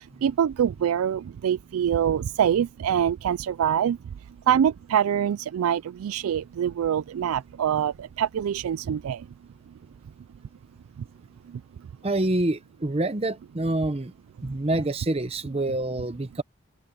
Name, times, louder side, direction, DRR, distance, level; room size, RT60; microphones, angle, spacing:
voice 1, 0.2-4.0 4.5-9.2, right 9 dB, 85° right, 0.3 m, -24 dB
voice 2, 12.0-14.1 14.4-16.4, right 2 dB, 30° right, 0.7 m, -26 dB
head